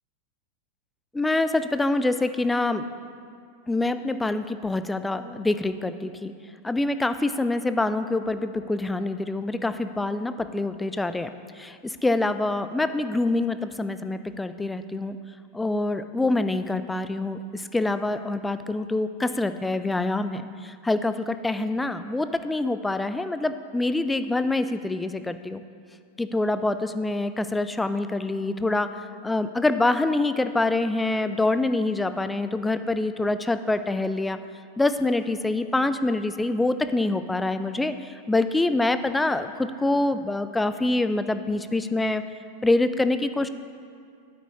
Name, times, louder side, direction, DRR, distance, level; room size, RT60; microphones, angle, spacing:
voice 1, 1.1-2.9 3.7-6.3 6.6-11.3 11.6-15.2 15.5-25.6 26.2-28.9 29.2-34.4 34.8-42.2 42.6-43.5, left 2 dB, 10° left, 11 dB, 0.3 m, -25 dB
9.1 x 7.8 x 3.1 m, 2.3 s
figure-of-eight pair, 90°, 0 cm